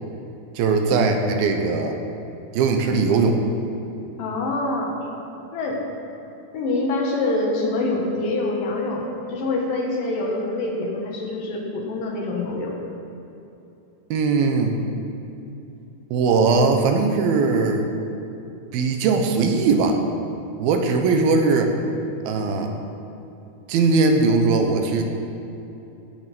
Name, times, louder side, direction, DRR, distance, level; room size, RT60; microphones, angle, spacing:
voice 1, 0.6-2.0 2.5-3.4 14.1-14.8 16.1-17.9 18.7-20.0 20.6-21.7 22.2-22.7 23.7-25.0, right 4 dB, 80° right, 4 dB, 2.8 m, -19 dB
voice 2, 4.2-5.0 5.5-5.9 6.5-12.7, left 2 dB, 70° left, 0 dB, 3.1 m, -25 dB
17.5 x 6.3 x 6.1 m, 2.9 s
omnidirectional pair, 4.3 m